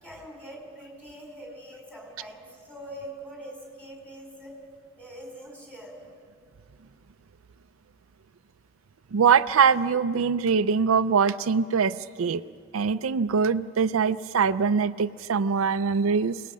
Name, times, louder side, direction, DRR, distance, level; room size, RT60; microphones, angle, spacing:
voice 1, 0.0-4.5 5.0-6.0, equal, 5° left, -1 dB, 5.1 m, -43 dB
voice 2, 9.1-12.4 12.7-16.4, right 6 dB, 85° right, 12 dB, 0.5 m, -23 dB
28.0 x 19.0 x 6.3 m, 2.1 s
head